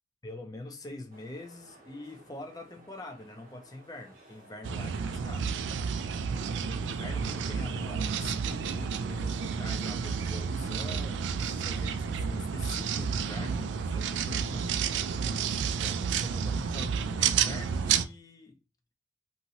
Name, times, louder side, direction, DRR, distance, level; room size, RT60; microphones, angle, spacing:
voice 1, 0.2-5.7 6.7-14.9 15.7-18.6, left 2 dB, 20° left, 0.4 m, -44 dB
sound 1, 1.1-17.6, right 1 dB, 45° right, 0.8 m, -54 dB
sound 2, 4.6-18.0, right 6 dB, 80° right, 0.3 m, -31 dB
2.9 x 2.6 x 2.8 m
head